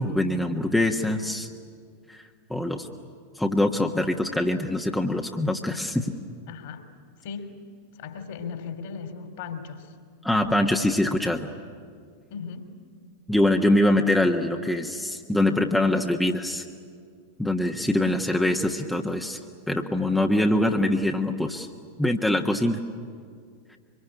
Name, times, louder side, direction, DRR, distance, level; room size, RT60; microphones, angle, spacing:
voice 1, 0.0-1.5 2.1-2.2 2.5-2.9 3.4-6.1 10.2-11.5 13.3-16.6 17.4-19.4 19.7-21.7 22.0-22.8, left 1 dB, 5° left, 2 dB, 1.4 m, -23 dB
voice 2, 6.5-6.9 7.2-7.5 7.9-9.9 12.3-12.7, left 6 dB, 55° left, 7 dB, 3.1 m, -37 dB
24.5 x 23.5 x 10.0 m, 2.1 s
figure-of-eight pair, 90°, 0 cm